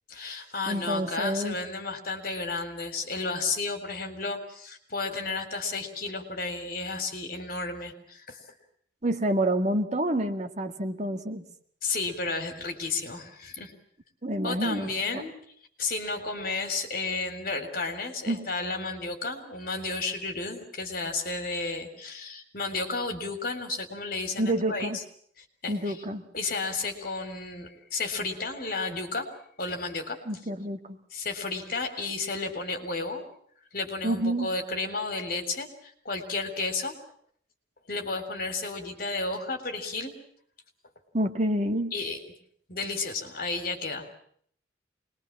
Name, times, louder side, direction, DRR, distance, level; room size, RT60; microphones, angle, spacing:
voice 1, 0.1-8.4 11.8-13.7 14.4-15.3 15.8-25.0 25.4-26.0 26.3-29.3 29.6-30.2 31.1-33.2 33.7-36.9 37.9-40.1 41.9-42.2 42.7-44.1, left 3 dB, 55° left, 7 dB, 3.8 m, -32 dB
voice 2, 0.7-1.6 9.0-11.4 14.2-15.2 18.3-18.5 24.4-25.0 25.7-26.2 30.3-31.0 34.0-34.5 41.1-41.9, right 1 dB, 40° right, 6 dB, 2.0 m, -28 dB
26.0 x 21.5 x 7.5 m, 0.63 s
head